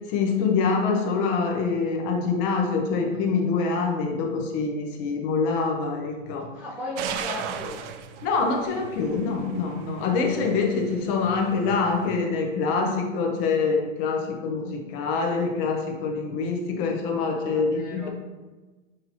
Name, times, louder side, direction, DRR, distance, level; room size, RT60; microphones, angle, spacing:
voice 1, 0.1-6.5 8.2-18.1, left 4 dB, 50° left, 2 dB, 0.9 m, -25 dB
voice 2, 6.5-7.9 17.5-18.1, left 2 dB, 5° right, -9 dB, 0.3 m, -36 dB
sound 1, 7.0-12.2, right 7 dB, 75° right, 0.5 m, -37 dB
6.5 x 2.7 x 3.0 m, 1.2 s
supercardioid pair, 140°, 36 cm